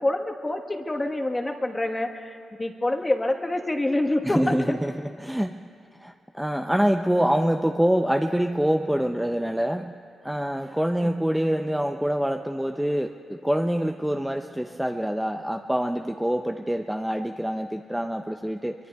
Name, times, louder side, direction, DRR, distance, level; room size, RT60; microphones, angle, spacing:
voice 1, 0.0-4.8 11.0-11.1, left 1 dB, 20° left, 2 dB, 1.2 m, -27 dB
voice 2, 4.2-5.6 6.0-10.0 10.2-18.7, equal, 5° right, 4 dB, 0.5 m, -25 dB
23.5 x 22.5 x 2.3 m, 2.4 s
cardioid pair, 90°, 0 cm